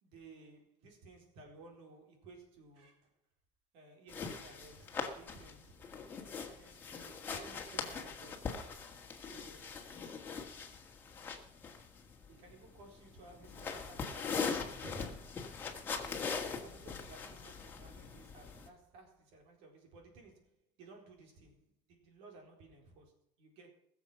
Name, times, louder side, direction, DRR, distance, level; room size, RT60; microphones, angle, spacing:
voice 1, 0.0-3.2 3.7-5.9 6.3-8.7 9.2-9.9 12.3-15.3 16.5-23.7, right 3 dB, 65° right, 4.3 m, -57 dB
sound 1, 4.1-18.7, left 5 dB, 20° left, 2.0 m, -41 dB
21.0 x 7.3 x 5.8 m
cardioid pair, 170°, 11 cm